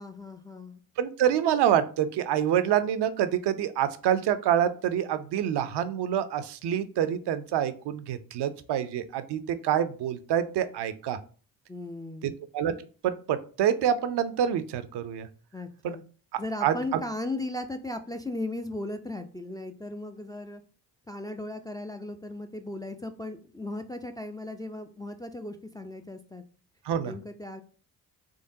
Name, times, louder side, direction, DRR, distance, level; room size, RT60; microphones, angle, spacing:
voice 1, 0.0-0.8 11.7-12.4 15.5-16.0 16.4-20.6 21.1-26.4 27.0-27.6, left 2 dB, 10° left, 5 dB, 0.4 m, -37 dB
voice 2, 1.0-11.2 12.2-12.7 13.0-15.3 15.8-16.0 16.6-16.7 26.9-27.1, right 10 dB, 60° right, 11 dB, 0.6 m, -26 dB
3.8 x 3.3 x 2.6 m, 0.39 s
hypercardioid pair, 40°, 47 cm